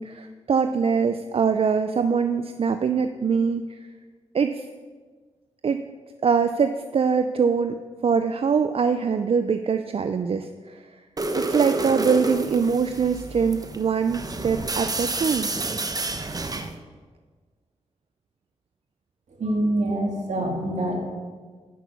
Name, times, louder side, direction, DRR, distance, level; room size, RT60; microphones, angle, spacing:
voice 1, 0.0-3.8 4.3-4.7 5.6-5.8 6.2-11.0 11.3-15.5, right 6 dB, 55° right, 9 dB, 0.4 m, -23 dB
sound 1, 11.2-16.8, right 2 dB, 30° right, 0.8 m, -29 dB
voice 2, 19.4-21.0, right 1 dB, 75° right, -1 dB, 2.5 m, -25 dB
9.3 x 6.1 x 6.7 m, 1.5 s
cardioid pair, 60°, 12 cm